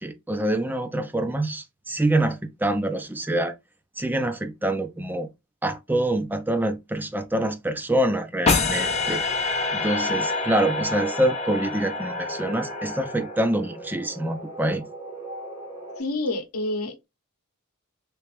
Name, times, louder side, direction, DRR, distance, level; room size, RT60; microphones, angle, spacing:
voice 1, 0.0-3.5 4.0-5.3 5.6-9.2 9.7-14.8, right 1 dB, 10° right, 0.4 m, -25 dB
sound 1, 8.5-13.7, left 4 dB, 30° left, 0.7 m, -27 dB
sound 2, 8.7-16.0, right 1 dB, 30° right, 1.3 m, -38 dB
voice 2, 16.0-17.1, left 2 dB, 80° left, 0.8 m, -28 dB
3.3 x 3.0 x 3.0 m
head